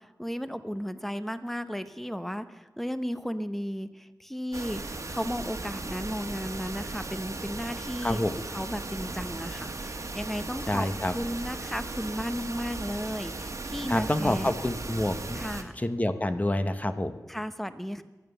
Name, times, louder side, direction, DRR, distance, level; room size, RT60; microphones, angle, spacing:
voice 1, 0.0-4.8 5.1-8.2 8.5-10.9 11.1-14.5 15.3-15.7 17.3-18.0, equal, 5° left, 11 dB, 0.9 m, -34 dB
sound 1, 4.5-15.6, right 3 dB, 50° right, 1.5 m, -37 dB
voice 2, 8.0-8.3 10.7-11.1 13.9-15.4 15.8-17.2, left 1 dB, 25° left, 9 dB, 1.1 m, -28 dB
22.5 x 9.1 x 6.9 m, 1.2 s
wide cardioid pair, 85°, 7 cm